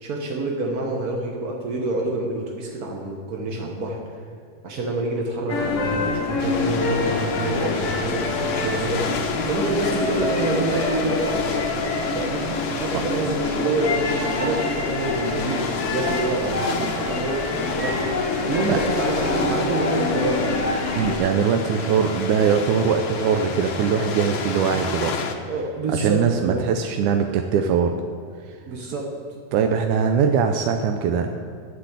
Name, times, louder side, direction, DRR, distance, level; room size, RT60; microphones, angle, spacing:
voice 1, 0.0-4.2 4.6-8.2 8.5-9.1 9.4-11.7 12.1-15.6 15.9-17.5 17.8-18.0 18.4-20.7 25.5-26.7 28.7-29.1, right 2 dB, 65° right, 0 dB, 0.9 m, -27 dB
sound 1, 5.5-21.2, left 3 dB, 40° left, 1.0 m, -26 dB
sound 2, 6.4-25.3, left 5 dB, 65° left, 1.2 m, -31 dB
voice 2, 20.9-25.1 25.9-27.9 29.5-31.4, right 6 dB, 85° right, 5 dB, 2.2 m, -21 dB
12.0 x 7.9 x 8.1 m, 2.1 s
omnidirectional pair, 3.4 m